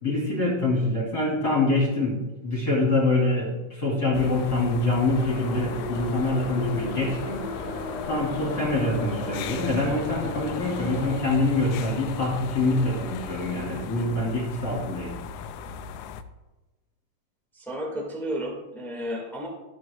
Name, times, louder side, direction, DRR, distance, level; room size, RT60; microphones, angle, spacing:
voice 1, 0.0-7.4 8.0-15.1, left 2 dB, 30° left, -4 dB, 3.3 m, -25 dB
sound 1, 4.1-16.2, left 6 dB, 85° left, 2.3 m, -37 dB
Subway metro underground, 5.0-11.1, left 2 dB, 60° left, 2.0 m, -35 dB
voice 2, 17.5-19.5, equal, ahead, -3 dB, 0.4 m, -32 dB
12.0 x 9.4 x 2.3 m, 1.1 s
omnidirectional pair, 3.9 m